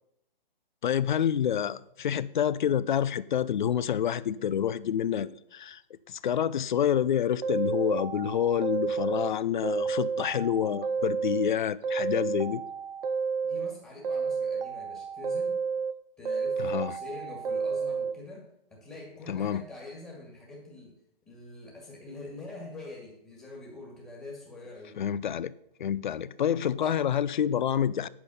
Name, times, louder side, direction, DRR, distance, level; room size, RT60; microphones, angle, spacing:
voice 1, 0.8-5.8 6.1-12.6 16.6-16.9 19.3-19.6 25.0-25.5 25.8-28.1, left 9 dB, 55° left, 0.6 m, -28 dB
sound 1, 7.4-9.3 9.6-11.5 11.8-13.7 14.0-15.9 16.3-18.1, right 5 dB, 70° right, 0.8 m, -31 dB
voice 2, 13.4-15.6 16.2-21.0 21.3-25.0 26.2-26.3 26.7-27.0, left 2 dB, 10° left, 1.8 m, -45 dB
8.7 x 8.7 x 5.4 m
hypercardioid pair, 145°, 29 cm